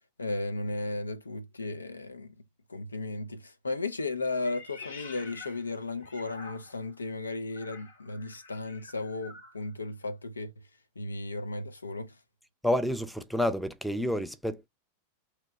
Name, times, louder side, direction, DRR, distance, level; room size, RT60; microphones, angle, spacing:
voice 1, 0.2-2.3 2.7-10.5 11.0-12.2, left 2 dB, 75° left, 0.5 m, -35 dB
Meow, 4.4-6.9 7.5-9.6, left 4 dB, 60° left, 1.0 m, -48 dB
voice 2, 12.6-14.7, left 1 dB, ahead, 0.5 m, -29 dB
3.0 x 2.1 x 4.0 m
figure-of-eight pair, 90°, 0 cm